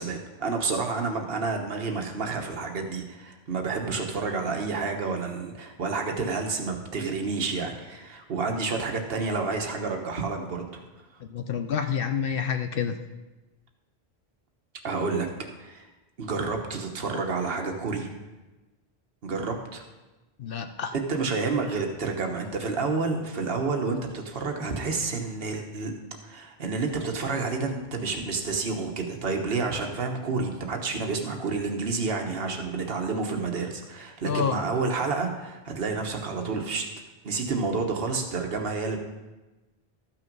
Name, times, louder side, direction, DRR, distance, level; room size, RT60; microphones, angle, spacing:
voice 1, 0.0-10.8 14.8-15.3 15.6-15.8 16.2-18.1 19.2-19.8 20.9-25.9 26.2-36.9 37.2-39.0, right 4 dB, 65° right, 3 dB, 1.4 m, -29 dB
voice 2, 11.2-13.0 20.4-20.9 34.2-34.6, left 7 dB, 65° left, 7 dB, 0.8 m, -28 dB
13.5 x 5.9 x 5.3 m, 1.1 s
omnidirectional pair, 1.1 m